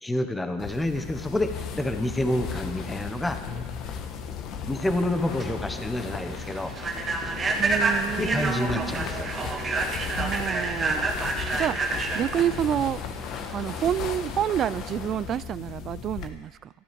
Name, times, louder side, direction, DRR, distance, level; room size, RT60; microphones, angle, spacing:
voice 1, 0.0-3.4 4.7-6.7 8.2-9.3, left 1 dB, 10° left, 1.0 m, -28 dB
sound 1, 0.6-16.3, left 7 dB, 50° left, 1.4 m, -36 dB
Human voice / Train, 5.1-14.0, right 3 dB, 20° right, 1.7 m, -29 dB
voice 2, 7.6-9.1 10.2-11.1 11.5-13.0 13.5-16.7, right 10 dB, 40° right, 0.3 m, -29 dB
13.0 x 11.5 x 5.3 m
supercardioid pair, 120°, 0 cm